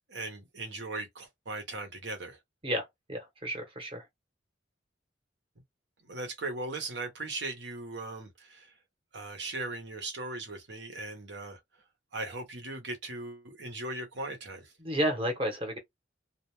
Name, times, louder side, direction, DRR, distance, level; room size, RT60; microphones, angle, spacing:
voice 1, 0.1-2.4 6.0-8.7 9.1-11.6 12.1-14.7, right 2 dB, 65° right, 0.9 m, -38 dB
voice 2, 2.6-4.0 14.8-15.8, equal, 30° right, 1.0 m, -32 dB
2.4 x 2.1 x 3.1 m
head